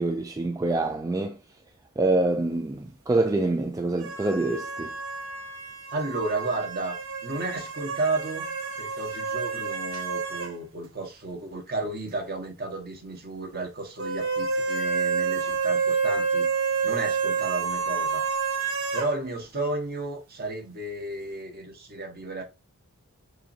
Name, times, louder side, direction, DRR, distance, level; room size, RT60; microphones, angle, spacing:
voice 1, 0.0-1.4 2.0-4.9, right 2 dB, 15° right, 0.3 m, -26 dB
sound 1, 4.0-10.5 10.8-10.9 14.0-19.1, right 5 dB, 65° right, 1.0 m, -29 dB
voice 2, 5.9-7.0 7.2-8.5 8.8-18.2 18.9-22.4, right 2 dB, 45° right, 1.3 m, -33 dB
6.5 x 2.7 x 2.8 m
head